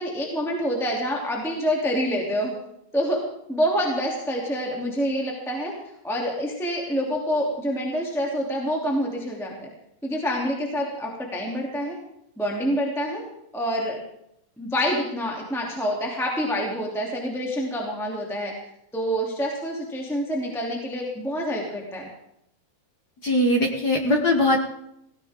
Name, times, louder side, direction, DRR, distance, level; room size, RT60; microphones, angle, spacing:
voice 1, 0.0-2.5 2.9-3.2 3.5-5.7 6.0-9.7 10.0-12.0 12.4-13.2 13.5-14.0 14.6-18.5 18.9-22.1, equal, ahead, -2 dB, 2.4 m, -27 dB
voice 2, 23.2-24.6, left 1 dB, 80° left, 2 dB, 0.9 m, -20 dB
18.0 x 17.5 x 3.7 m, 0.78 s
omnidirectional pair, 4.0 m